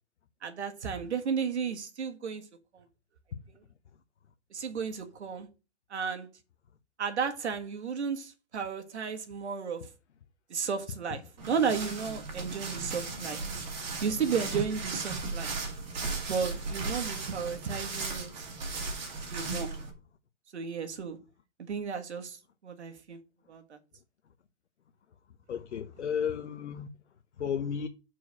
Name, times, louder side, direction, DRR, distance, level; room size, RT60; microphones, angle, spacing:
voice 1, 0.4-2.4 2.7-2.9 4.5-5.5 5.9-6.3 7.0-9.9 10.5-13.4 14.0-15.7 16.3-18.5 19.3-19.7 20.5-21.2 21.7-23.2 23.5-23.8, right 6 dB, 75° right, 1.6 m, -33 dB
sound 1, 11.4-19.9, right 3 dB, 40° right, 2.1 m, -36 dB
voice 2, 25.5-26.9 27.4-27.9, left 7 dB, 75° left, 0.9 m, -33 dB
6.4 x 4.6 x 6.4 m
hypercardioid pair, 175°, 34 cm